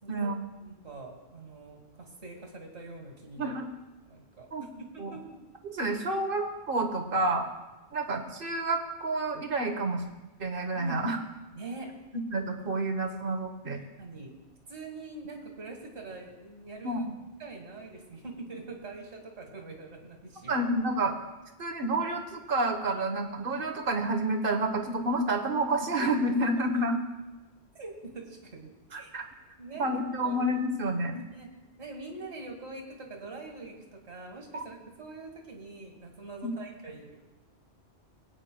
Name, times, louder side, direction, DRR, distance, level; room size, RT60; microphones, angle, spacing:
voice 1, 0.6-3.6 4.1-4.7 5.1-5.4 10.7-11.1 11.5-11.9 14.0-14.3 14.7-17.0 17.4-20.6 26.0-26.3 27.7-29.1 29.6-29.9 30.2-30.4 31.1-31.5 31.8-33.7 34.1-37.2, right 3 dB, 75° right, 2 dB, 2.0 m, -44 dB
voice 2, 3.4-3.7 4.5-5.1 5.6-7.5 7.9-10.0 10.4-11.2 12.3-13.8 16.8-17.1 20.5-21.1 21.6-27.0 28.9-29.2 29.8-31.2 34.5-34.6 36.4-36.5, right 2 dB, 55° right, 5 dB, 1.3 m, -29 dB
22.0 x 8.9 x 2.2 m, 1.1 s
omnidirectional pair, 1.1 m